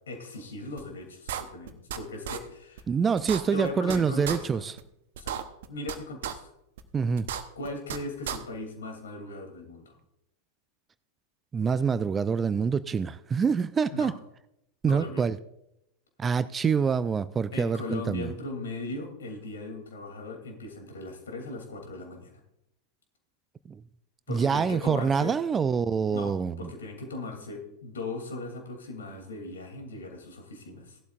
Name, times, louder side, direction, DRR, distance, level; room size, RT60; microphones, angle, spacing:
voice 1, 0.1-2.8 3.5-4.6 5.2-5.3 5.7-6.5 7.5-10.0 13.9-14.1 14.9-15.2 17.5-22.3 24.3-25.3 26.1-31.0, left 2 dB, 65° left, 2.8 m, -38 dB
sound 1, 0.8-0.9 1.3-2.0 2.2-2.4 2.8-2.9 3.2-4.0 4.2-4.4 4.8-4.9 5.2-5.9 6.2-6.3 6.8-6.9 7.2-8.0 8.2-8.4, right 10 dB, 55° right, 0.9 m, -33 dB
voice 2, 2.9-4.7 6.9-7.3 11.5-14.1 14.8-15.4 16.2-18.3 23.7-23.8 24.3-26.7, right 6 dB, 20° right, 0.4 m, -26 dB
16.5 x 12.0 x 2.5 m
figure-of-eight pair, 90°, 0 cm